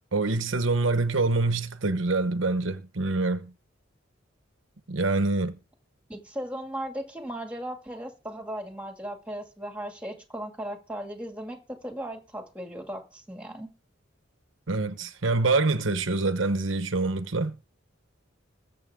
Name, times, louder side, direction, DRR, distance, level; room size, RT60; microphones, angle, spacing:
voice 1, 0.1-3.5 4.9-5.6 14.7-17.6, right 3 dB, 80° right, 1.0 m, -25 dB
voice 2, 6.1-13.7, right 1 dB, 5° right, 2.2 m, -37 dB
20.5 x 7.7 x 3.6 m
head